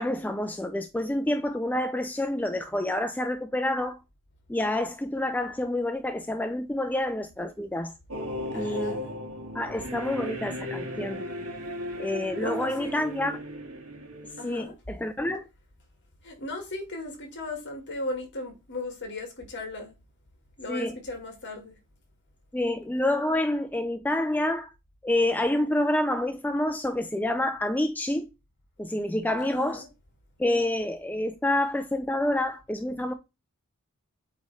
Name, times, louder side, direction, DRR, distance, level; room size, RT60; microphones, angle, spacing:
voice 1, 0.0-4.0 4.5-7.9 8.5-9.0 9.5-11.2 12.0-13.4 14.4-15.4 20.7-21.0 22.5-24.7 25.0-28.3 28.8-29.8 30.4-33.1, left 1 dB, 5° left, 0.4 m, -28 dB
sound 1, 8.1-14.6, equal, 80° right, 1.7 m, -36 dB
voice 2, 8.5-9.2 12.4-13.1 14.4-14.7 16.2-19.9 20.6-21.8 29.4-29.9, left 2 dB, 55° left, 2.1 m, -37 dB
8.3 x 3.1 x 4.1 m
head